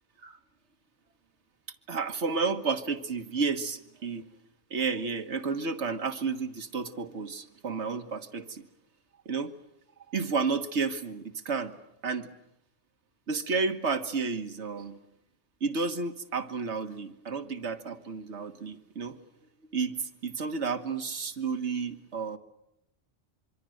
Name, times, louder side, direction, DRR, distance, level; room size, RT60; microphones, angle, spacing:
voice 1, 1.9-4.2 4.7-8.6 9.2-9.5 10.1-11.7 12.0-12.3 13.3-14.9 15.6-19.1 19.7-22.4, right 4 dB, 70° right, 8 dB, 1.7 m, -31 dB
25.5 x 24.5 x 7.8 m, 0.83 s
omnidirectional pair, 1.2 m